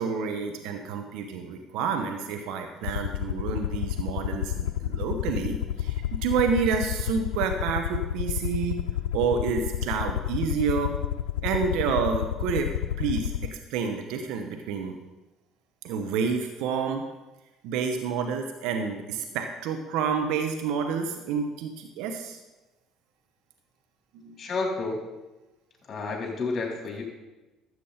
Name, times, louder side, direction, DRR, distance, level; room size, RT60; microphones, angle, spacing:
voice 1, 0.0-8.8 9.1-10.9 11.4-12.7 13.0-14.9 15.8-17.0 17.6-22.4 24.1-24.4, right 6 dB, 70° right, 5 dB, 1.0 m, -29 dB
Aircraft, 2.8-13.5, left 12 dB, 85° left, 0.3 m, -30 dB
voice 2, 24.4-25.0 25.9-27.0, left 3 dB, 40° left, -1 dB, 4.1 m, -30 dB
13.0 x 8.1 x 4.3 m, 1.1 s
hypercardioid pair, 65°, 0 cm